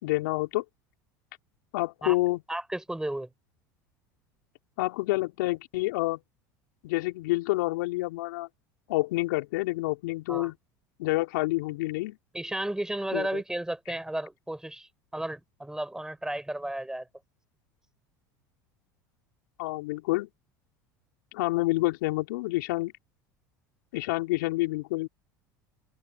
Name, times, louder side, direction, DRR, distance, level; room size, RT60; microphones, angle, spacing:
voice 1, 0.0-0.6 1.7-2.4 4.8-6.2 6.8-8.5 8.9-10.6 11.0-12.2 13.1-13.4 19.6-20.3 21.3-22.9 23.9-25.1, left 21 dB, 70° left, 4.1 m, -28 dB
voice 2, 2.5-3.3 10.3-10.5 12.3-17.1, right 1 dB, 5° right, 5.4 m, -33 dB
open air
hypercardioid pair, 80°, 10 cm